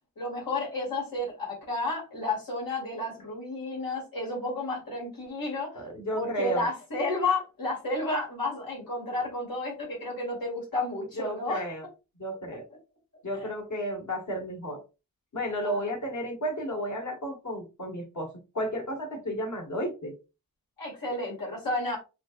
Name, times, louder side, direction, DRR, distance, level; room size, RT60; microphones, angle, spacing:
voice 1, 0.2-5.9 6.1-11.7 13.4-13.5 15.6-15.9 20.8-22.0, left 2 dB, 80° left, 2.5 m, -31 dB
voice 2, 5.7-6.6 11.2-11.8 12.2-12.6 13.2-14.8 15.3-20.1, equal, 55° left, 1.6 m, -33 dB
5.7 x 2.5 x 2.5 m
wide cardioid pair, 95°, 35 cm